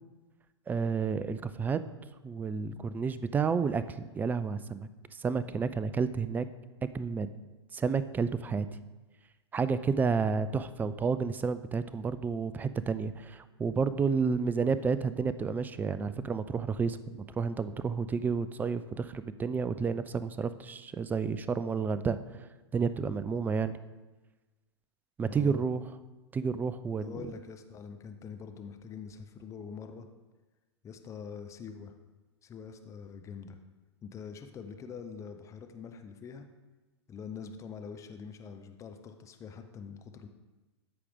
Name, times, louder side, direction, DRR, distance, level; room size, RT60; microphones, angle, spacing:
voice 1, 0.7-1.8 2.2-4.9 5.2-6.5 6.9-7.3 7.7-8.7 9.5-17.0 17.4-22.2 22.7-23.8 25.2-25.8 26.3-27.2, right 5 dB, 10° right, 13 dB, 0.3 m, -30 dB
voice 2, 25.2-25.6 27.0-30.1 30.8-31.9 32.4-33.6 34.0-36.5 37.1-40.3, left 6 dB, 20° left, 7 dB, 0.7 m, -44 dB
13.0 x 4.9 x 3.6 m, 1.2 s
figure-of-eight pair, 100°, 14 cm